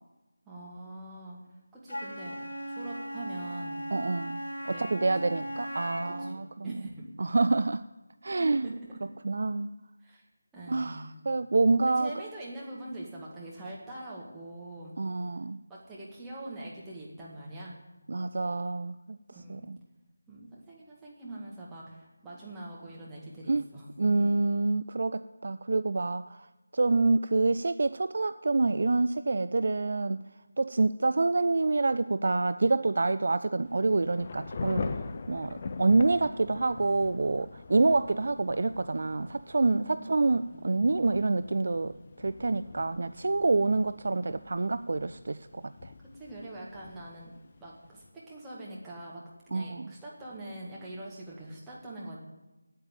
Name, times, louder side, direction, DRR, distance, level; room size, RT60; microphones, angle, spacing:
voice 1, 0.5-1.4 1.7-2.4 2.7-3.8 4.7-5.4 5.9-7.1 8.4-8.9 10.0-10.2 10.5-11.2 11.9-14.9 15.7-17.8 19.3-19.7 20.3-24.3 39.8-40.9 46.1-47.3 47.6-49.2 49.5-52.2, right 1 dB, 5° right, -7 dB, 1.8 m, -43 dB
Wind instrument woodwind instrument, 1.9-6.4, equal, 60° left, 1.5 m, -38 dB
voice 2, 3.9-4.4 4.7-6.7 7.2-7.8 8.2-8.7 9.2-9.7 10.7-12.1 15.0-15.6 18.1-19.2 19.5-19.8 23.5-23.6 24.0-26.4 26.7-30.2 30.6-34.8 35.3-45.9 49.5-49.9, right 3 dB, 45° right, 12 dB, 0.4 m, -27 dB
Thunder / Rain, 33.6-48.1, left 4 dB, 30° left, 0.6 m, -43 dB
8.8 x 8.8 x 8.9 m, 1.1 s
figure-of-eight pair, 160°, 0 cm